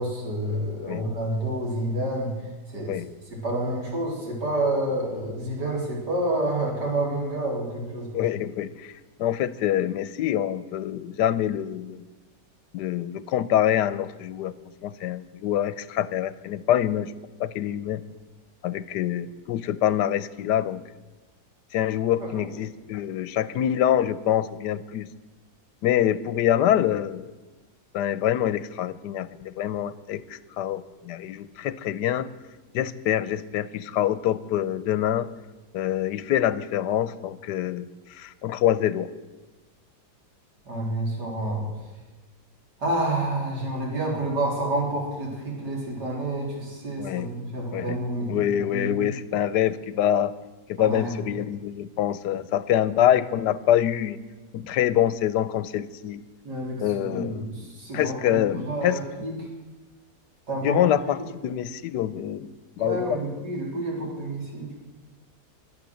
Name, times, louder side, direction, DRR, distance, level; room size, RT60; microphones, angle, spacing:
voice 1, 0.0-2.3 2.7-8.1 22.2-22.5 40.7-41.7 42.8-49.1 50.8-51.4 56.4-59.5 60.5-60.9 62.8-64.7, right 1 dB, 80° right, -2 dB, 4.5 m, -29 dB
voice 2, 8.1-8.9 9.2-12.0 12.7-14.5 14.8-17.1 17.4-18.0 18.6-20.8 21.7-25.1 25.8-27.3 27.9-32.3 32.7-35.3 35.7-39.1 47.0-47.3 47.7-48.0 48.3-50.3 50.7-54.2 54.5-56.2 56.8-57.4 57.9-59.0 59.4-59.5 60.6-61.2 61.4-62.5 62.8-63.1, left 11 dB, 90° left, 16 dB, 1.3 m, -25 dB
23.0 x 8.1 x 7.7 m, 1.2 s
omnidirectional pair, 1.8 m